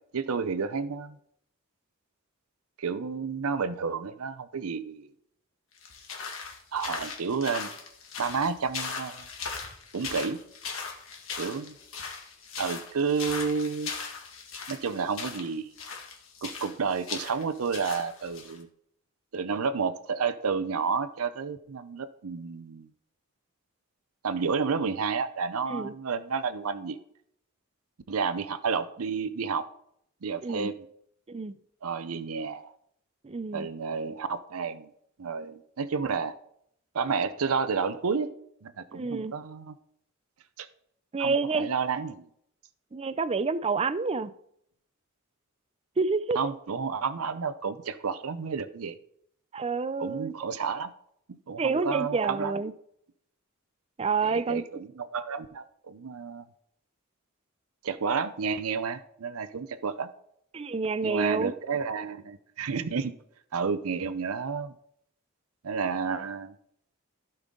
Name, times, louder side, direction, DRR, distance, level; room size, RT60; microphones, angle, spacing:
voice 1, 0.1-1.2 2.8-5.1 6.7-7.7 8.2-9.3 9.9-10.4 11.4-11.7 12.6-13.9 14.7-15.7 16.4-18.7 19.3-22.9 24.2-27.0 28.1-29.6 30.2-30.7 31.8-32.7 33.5-34.9 35.2-36.4 36.9-38.3 38.6-39.7 40.6-40.7 41.2-42.3 46.3-49.0 50.0-50.9 51.5-52.5 54.2-56.4 57.8-60.1 61.0-63.1 63.5-64.7 65.6-66.5, right 5 dB, 85° right, 0.6 m, -31 dB
sound 1, 5.8-18.6, left 5 dB, 65° left, 1.8 m, -39 dB
voice 2, 33.2-33.7 38.9-39.3 41.1-41.7 42.9-44.3 46.0-46.4 49.5-50.3 51.6-52.7 54.0-54.6 60.5-61.5, right 4 dB, 30° right, 0.4 m, -28 dB
15.5 x 5.4 x 3.7 m
head